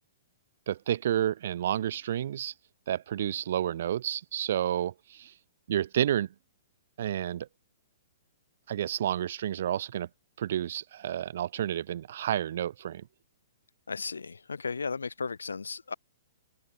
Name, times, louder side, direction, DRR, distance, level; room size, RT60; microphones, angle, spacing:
voice 1, 0.7-2.5 2.9-5.3 5.7-6.3 7.0-7.5 8.7-10.1 10.4-13.1, right 11 dB, 60° right, 2.9 m, -30 dB
voice 2, 13.9-15.9, left 5 dB, 80° left, 2.0 m, -35 dB
figure-of-eight pair, 115°, 0 cm